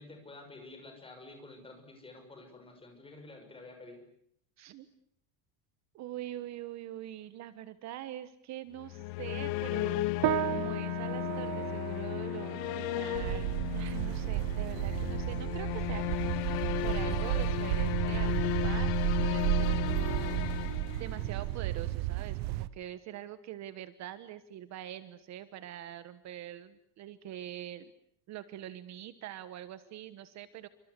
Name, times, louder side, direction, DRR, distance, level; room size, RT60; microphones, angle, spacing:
voice 1, 0.0-4.0, left 2 dB, 10° left, 5 dB, 6.1 m, -50 dB
voice 2, 5.9-27.9 28.3-30.7, right 12 dB, 40° right, 13 dB, 1.2 m, -44 dB
sound 1, 8.8-21.6, left 16 dB, 70° left, 1.9 m, -35 dB
sound 2, 10.2-19.9, right 17 dB, 55° right, 1.1 m, -39 dB
sound 3, 13.1-22.7, right 16 dB, 80° right, 1.4 m, -32 dB
28.0 x 26.0 x 8.2 m, 0.70 s
cardioid pair, 180°, 44 cm